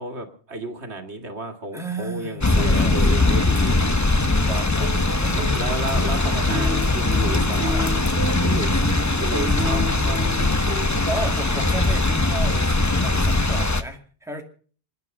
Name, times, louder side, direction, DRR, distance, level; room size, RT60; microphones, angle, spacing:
voice 1, 0.0-3.8 4.5-4.7 5.3-7.8 8.4-8.8 9.2-10.6, right 2 dB, 80° right, 5 dB, 2.4 m, -32 dB
voice 2, 1.7-4.9 5.2-5.7 6.2-6.7 7.5-8.4 11.1-14.4, right 1 dB, 5° right, 3 dB, 2.4 m, -35 dB
sound 1, 2.4-13.8, left 2 dB, 20° left, 0.8 m, -21 dB
sound 2, 4.2-11.7, equal, 65° right, 3.6 m, -32 dB
27.5 x 9.6 x 5.3 m, 0.43 s
omnidirectional pair, 1.1 m